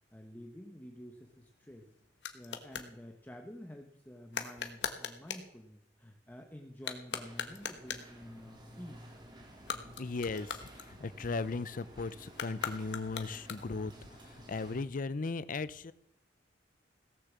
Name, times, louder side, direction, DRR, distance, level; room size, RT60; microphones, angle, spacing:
voice 1, 0.1-1.9 2.3-9.1, equal, 10° left, 3 dB, 1.0 m, -50 dB
sound 1, 1.2-2.9 4.3-5.5 6.7-8.2 9.5-11.3 12.3-13.9, left 6 dB, 75° left, 1.2 m, -41 dB
sound 2, 7.1-14.8, equal, 25° right, 2.6 m, -53 dB
voice 2, 10.0-13.9 14.2-15.9, left 3 dB, 50° left, 16 dB, 0.6 m, -37 dB
17.0 x 6.7 x 7.3 m, 0.78 s
head